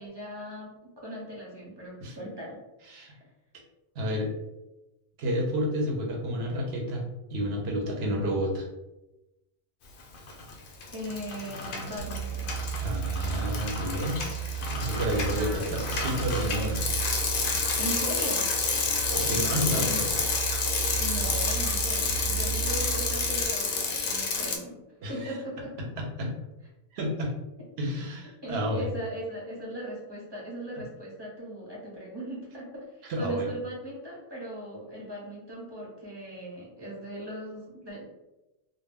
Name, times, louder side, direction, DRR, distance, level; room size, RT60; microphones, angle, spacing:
voice 1, 0.0-2.6 3.1-3.2 10.9-12.5 15.3-15.8 17.8-18.5 21.0-24.8 25.1-25.7 28.4-38.0, equal, 25° right, -5 dB, 0.7 m, -39 dB
voice 2, 4.0-4.3 5.2-7.0 7.3-8.7 12.8-14.4 14.7-16.8 19.1-20.2 25.0-25.3 26.0-26.3 26.9-27.3 27.8-28.9 33.0-33.5, equal, 60° right, 0 dB, 0.8 m, -30 dB
Bicycle, 10.1-10.5 10.8-24.6, left 4 dB, 60° left, 0.5 m, -29 dB
sound 1, 12.0-23.4, right 9 dB, 80° right, 1.0 m, -34 dB
2.2 x 2.1 x 3.4 m, 0.98 s
omnidirectional pair, 1.3 m